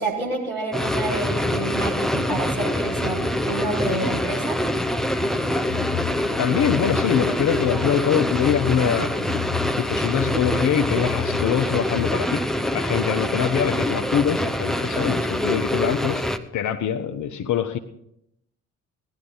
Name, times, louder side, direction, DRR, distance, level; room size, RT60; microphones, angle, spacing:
voice 1, 0.0-4.6, right 2 dB, 85° right, -3 dB, 2.5 m, -28 dB
sound 1, 0.7-16.4, left 1 dB, ahead, 0.8 m, -25 dB
sound 2, 5.2-12.1, left 12 dB, 70° left, 0.9 m, -33 dB
voice 2, 6.4-9.1 9.7-12.4 12.7-16.2 16.5-17.8, left 8 dB, 45° left, 6 dB, 1.0 m, -24 dB
17.0 x 11.5 x 4.0 m, 0.76 s
figure-of-eight pair, 45°, 42 cm